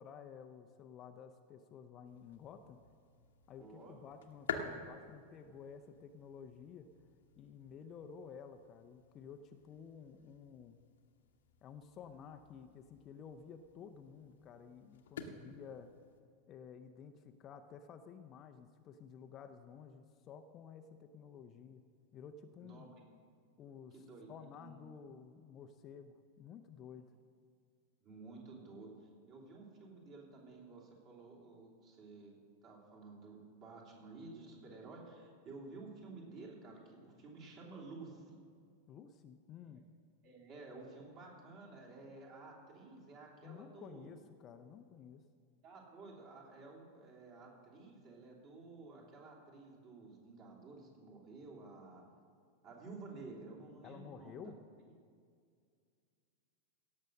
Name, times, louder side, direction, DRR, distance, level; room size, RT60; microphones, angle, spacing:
voice 1, 0.0-2.8 3.5-6.9 7.3-10.8 11.6-15.9 16.5-21.8 22.1-22.9 23.6-27.1 38.9-39.8 43.4-45.2 53.8-54.6, left 7 dB, 30° left, 8 dB, 0.6 m, -53 dB
sound 1, 2.0-16.2, left 6 dB, 60° left, 1.0 m, -50 dB
voice 2, 3.6-4.0 22.6-22.9 23.9-24.7 28.0-32.3 32.6-38.4 40.2-44.1 45.6-52.0 52.6-54.5, right 3 dB, 35° right, -2 dB, 3.1 m, -53 dB
17.0 x 6.4 x 6.3 m, 2.2 s
figure-of-eight pair, 90°, 0 cm